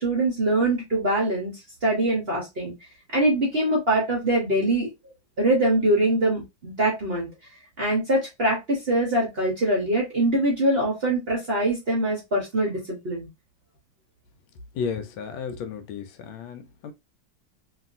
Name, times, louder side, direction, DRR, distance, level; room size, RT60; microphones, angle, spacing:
voice 1, 0.0-1.5 1.8-2.7 3.1-4.9 5.4-7.3 7.8-13.3, right 1 dB, 45° right, 0.8 m, -23 dB
voice 2, 14.7-16.9, left 6 dB, 80° left, 1.3 m, -33 dB
3.0 x 2.6 x 2.5 m
omnidirectional pair, 2.2 m